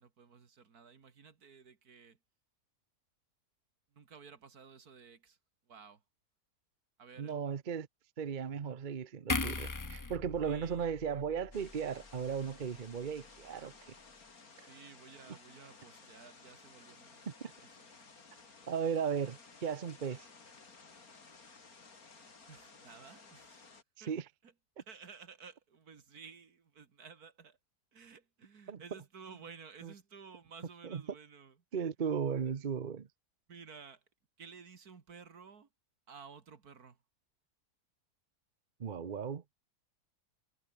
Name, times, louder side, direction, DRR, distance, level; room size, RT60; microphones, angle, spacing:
voice 1, 0.0-2.2 3.9-5.4 5.7-6.0 7.0-7.4 10.4-10.9 14.7-17.3 17.8-17.9 22.5-23.6 24.0-24.1 24.4-24.5 24.8-27.6 27.9-31.6 33.5-34.0 34.4-35.7 36.1-37.0, right 6 dB, 70° right, 2.4 m, -54 dB
voice 2, 7.2-7.9 8.2-13.9 15.3-15.4 17.3-17.5 18.7-20.2 24.0-24.3 28.7-28.8 29.8-29.9 30.8-31.0 31.7-33.1 38.8-39.4, right 7 dB, 40° right, 0.8 m, -36 dB
sound 1, 9.3-12.7 13.0-13.2, left 3 dB, 25° left, 0.4 m, -39 dB
sound 2, 11.5-23.8, left 4 dB, 65° left, 3.3 m, -57 dB
omnidirectional pair, 1.7 m